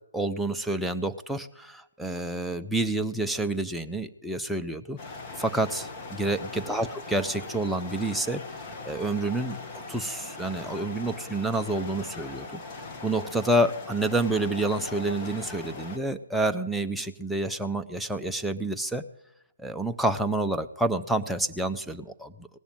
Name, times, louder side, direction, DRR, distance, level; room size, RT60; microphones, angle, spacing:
voice 1, 0.1-5.0 5.4-8.4 8.8-9.6 9.9-12.6 13.0-19.0 19.6-22.5, right 2 dB, ahead, 5 dB, 0.6 m, -28 dB
sound 1, 5.0-16.0, left 3 dB, 25° left, 1.9 m, -40 dB
18.0 x 7.1 x 9.0 m, 0.89 s
figure-of-eight pair, 140°, 0 cm